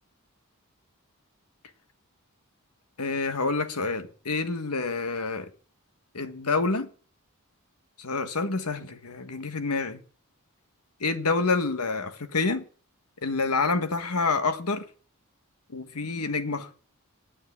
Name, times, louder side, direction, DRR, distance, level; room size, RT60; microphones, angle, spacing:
voice 1, 3.0-5.5 6.1-6.9 8.0-10.0 11.0-12.7 13.2-14.8 15.7-16.7, left 3 dB, 85° left, 1.5 m, -28 dB
9.8 x 8.7 x 9.7 m
head